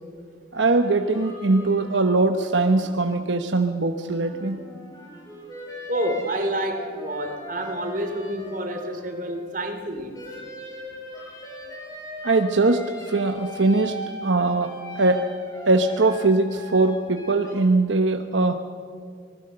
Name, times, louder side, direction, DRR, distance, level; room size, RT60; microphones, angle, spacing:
sound 1, 0.5-3.5 3.9-9.7 10.1-17.6, equal, 20° left, 6.8 m, -40 dB
voice 1, 0.5-4.6 12.2-15.3 15.7-18.5, right 3 dB, 80° right, 6 dB, 1.0 m, -21 dB
voice 2, 5.9-10.2, right 1 dB, 45° right, 5 dB, 2.8 m, -28 dB
25.5 x 20.0 x 6.7 m, 2.3 s
head